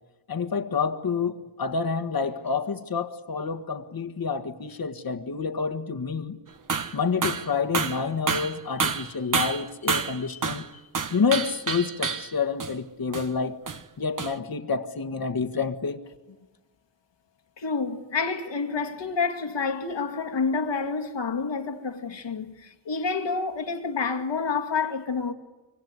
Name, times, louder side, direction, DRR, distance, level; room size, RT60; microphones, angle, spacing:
voice 1, 0.3-6.4 6.9-10.6 11.1-13.6 14.0-16.0, left 5 dB, 50° left, 1.7 m, -28 dB
sound 1, 6.7-7.0 7.2-7.5 7.7-10.7 10.9-12.3 12.6-12.7 13.1-13.3 13.7-13.8 14.2-14.3, right 5 dB, 45° right, 1.3 m, -28 dB
voice 2, 17.6-25.3, left 4 dB, 70° left, 2.2 m, -28 dB
25.5 x 24.0 x 9.7 m
cardioid pair, 70°, 45 cm